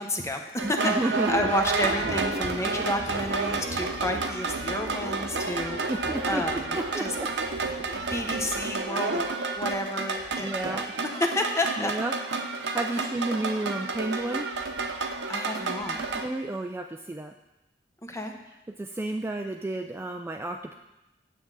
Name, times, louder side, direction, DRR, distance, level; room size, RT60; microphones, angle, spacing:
voice 1, 0.0-5.9 6.2-7.1 7.9-9.2 9.5-11.9 13.0-13.1 15.3-16.0 18.0-18.3, left 1 dB, 15° left, 4 dB, 0.8 m, -31 dB
voice 2, 0.6-1.5 5.5-5.6 5.9-6.4 6.7-7.0 7.4-7.9 10.4-10.8 11.8-12.1 12.4-14.5 15.9-17.3 18.8-20.7, right 2 dB, 15° right, 4 dB, 0.3 m, -32 dB
sound 1, 0.6-16.3, right 3 dB, 70° right, 0.8 m, -30 dB
9.4 x 7.4 x 3.9 m, 0.97 s
head